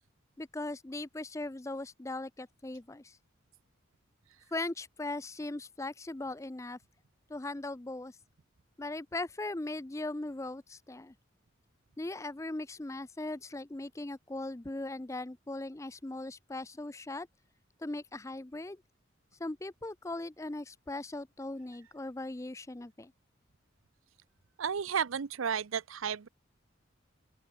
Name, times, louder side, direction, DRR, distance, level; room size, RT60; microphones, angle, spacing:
voice 1, 0.4-3.2 4.5-6.8 7.3-8.2 8.8-11.1 12.0-17.3 17.8-18.8 19.4-23.1, left 2 dB, 15° left, 0.5 m, -39 dB
voice 2, 24.6-26.3, right 7 dB, 90° right, 0.6 m, -32 dB
open air
head